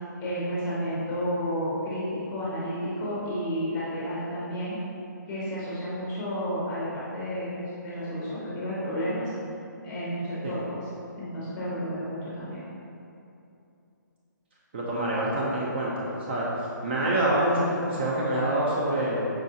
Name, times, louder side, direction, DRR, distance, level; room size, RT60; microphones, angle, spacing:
voice 1, 0.2-4.8 5.3-9.3 9.8-10.8 11.2-12.6, equal, 15° left, -9 dB, 0.9 m, -31 dB
voice 2, 14.7-16.5 16.8-19.3, right 1 dB, 35° right, -5 dB, 0.4 m, -26 dB
4.7 x 2.4 x 2.7 m, 2.7 s
hypercardioid pair, 160°, 11 cm